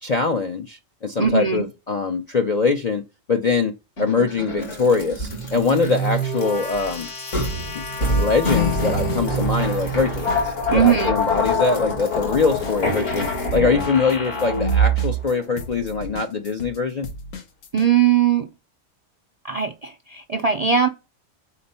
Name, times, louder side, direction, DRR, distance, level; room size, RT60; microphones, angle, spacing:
voice 1, 0.0-3.0 3.3-7.1 7.7-17.1, left 4 dB, 50° left, 0.5 m, -23 dB
voice 2, 1.2-1.7 10.7-11.1 17.7-18.5 19.4-20.9, right 8 dB, 55° right, 0.4 m, -19 dB
sound 1, 4.0-15.2, equal, 70° left, 2.1 m, -24 dB
sound 2, 8.5-9.7 10.0-17.9, left 2 dB, 85° left, 1.3 m, -37 dB
4.3 x 4.2 x 5.4 m
omnidirectional pair, 1.3 m